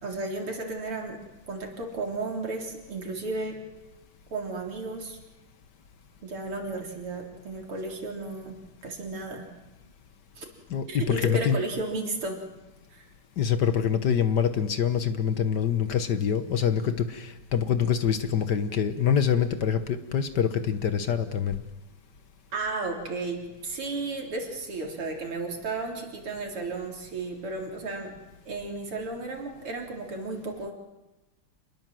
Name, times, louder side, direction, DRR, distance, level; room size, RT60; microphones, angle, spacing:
voice 1, 0.0-1.2 1.5-3.6 4.3-5.2 6.2-9.5 10.4-10.5 10.9-12.4 12.9-13.1 22.5-28.1 28.5-30.7, right 3 dB, 85° right, 1 dB, 4.5 m, -33 dB
voice 2, 10.7-11.6 13.4-21.6, left 8 dB, 55° left, 10 dB, 1.6 m, -25 dB
28.0 x 20.5 x 7.6 m, 1.1 s
omnidirectional pair, 2.4 m